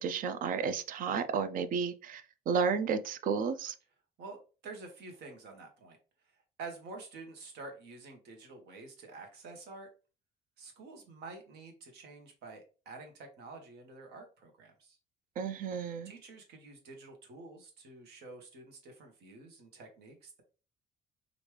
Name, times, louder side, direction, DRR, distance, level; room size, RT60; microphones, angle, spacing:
voice 1, 0.0-3.7 15.4-16.1, right 6 dB, 55° right, 0.4 m, -32 dB
voice 2, 4.2-6.0 6.6-9.9 10.6-15.0 16.0-20.4, right 3 dB, 75° right, 1.0 m, -48 dB
3.1 x 2.5 x 3.2 m
cardioid pair, 110°, 17 cm